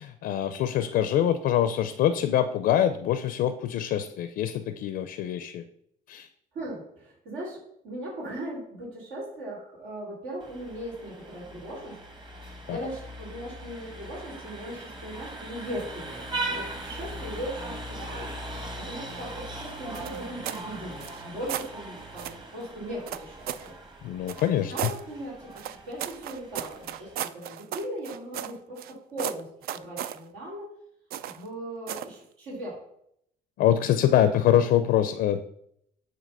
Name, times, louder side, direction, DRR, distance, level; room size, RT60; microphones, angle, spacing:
voice 1, 0.2-5.6 6.1-6.3 12.7-12.9 24.0-24.9 33.6-35.4, left 10 dB, 70° left, 9 dB, 0.5 m, -24 dB
voice 2, 6.5-7.6 7.8-12.0 12.4-23.7 24.7-29.5 29.7-30.7 31.2-32.8, equal, 85° right, -4 dB, 2.6 m, -38 dB
Vehicle horn car horn honking, 10.4-27.2, right 1 dB, 25° right, 1.1 m, -40 dB
sound 1, 19.9-20.7 21.0-21.7 22.2-22.4 23.1-23.7 24.3-25.0 25.6-28.9 29.2-30.2 31.1-31.5 31.9-32.2, right 11 dB, 65° right, 0.4 m, -35 dB
7.5 x 2.8 x 5.4 m, 0.72 s
cardioid pair, 110°, 17 cm